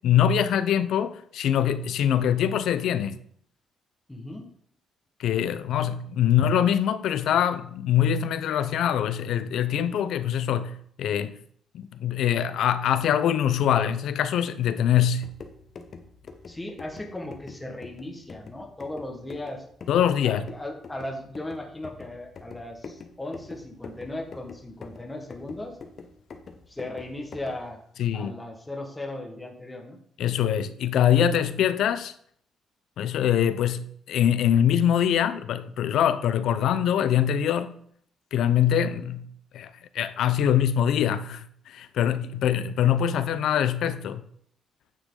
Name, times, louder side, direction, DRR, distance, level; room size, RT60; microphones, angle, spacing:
voice 1, 0.0-3.2 5.2-11.3 11.7-15.3 19.9-20.5 28.0-28.3 30.2-32.1 33.0-37.7 38.3-39.3 39.5-39.7 39.9-44.2, left 9 dB, 80° left, 0.6 m, -23 dB
voice 2, 4.1-4.5 16.5-19.6 20.2-25.8 26.7-27.8 28.1-30.0, left 1 dB, 10° left, 1.5 m, -37 dB
sound 1, 15.1-27.7, left 4 dB, 50° left, 1.0 m, -45 dB
9.3 x 6.4 x 3.9 m
cardioid pair, 95°, 0 cm